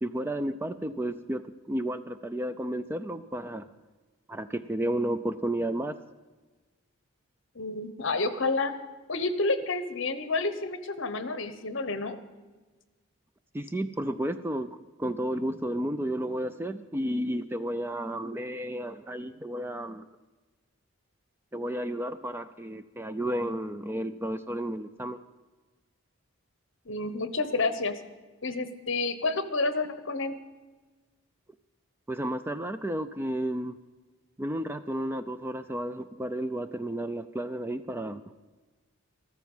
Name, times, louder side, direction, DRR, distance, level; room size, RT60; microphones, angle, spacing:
voice 1, 0.0-3.7 4.3-6.0 13.5-20.0 21.5-25.2 32.1-33.8 34.4-38.2, right 1 dB, 10° right, 11 dB, 0.3 m, -32 dB
voice 2, 7.5-8.7 9.1-12.2 26.9-27.9 28.4-30.4, left 3 dB, 60° left, 11 dB, 1.0 m, -29 dB
14.0 x 13.5 x 5.5 m, 1.3 s
head